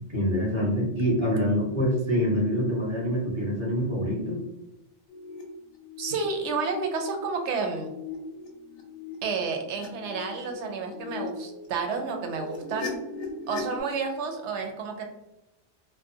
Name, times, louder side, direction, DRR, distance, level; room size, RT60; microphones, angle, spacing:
voice 1, 0.1-4.4, equal, 30° right, -4 dB, 0.8 m, -25 dB
sound 1, 5.1-5.4 5.7-6.1 6.6-11.7 12.0-13.8, left 4 dB, 65° left, 0.9 m, -39 dB
voice 2, 6.0-7.9 9.2-13.0 13.5-15.0, right 4 dB, 85° right, 3 dB, 0.9 m, -30 dB
2.5 x 2.2 x 2.5 m, 0.95 s
omnidirectional pair, 1.2 m